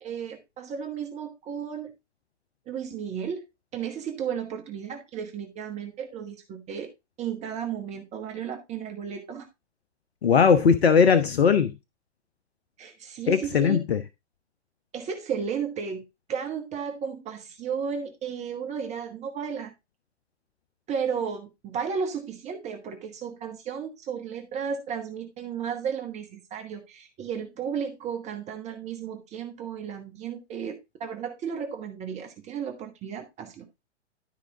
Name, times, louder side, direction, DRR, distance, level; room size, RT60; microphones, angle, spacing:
voice 1, 0.0-1.9 2.7-3.4 3.7-6.9 7.2-9.5 12.8-13.8 14.9-16.0 16.3-19.7 20.9-33.7, right 7 dB, 20° right, 1.3 m, -34 dB
voice 2, 10.2-11.7 13.3-14.0, left 6 dB, 60° left, 1.0 m, -19 dB
12.5 x 5.1 x 3.8 m
figure-of-eight pair, 115°, 35 cm